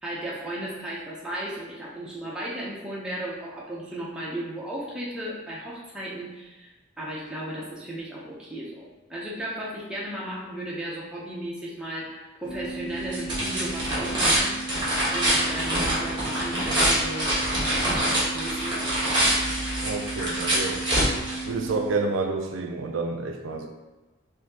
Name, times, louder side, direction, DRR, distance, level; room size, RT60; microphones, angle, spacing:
voice 1, 0.0-14.5 15.1-17.3 17.7-19.2, right 1 dB, 5° right, -7 dB, 0.7 m, -35 dB
sound 1, 12.4-21.9, right 1 dB, 20° right, 1.2 m, -25 dB
voice 2, 19.8-20.8 21.5-23.7, right 3 dB, 75° right, 3 dB, 0.4 m, -29 dB
4.1 x 2.7 x 2.8 m, 1.1 s
head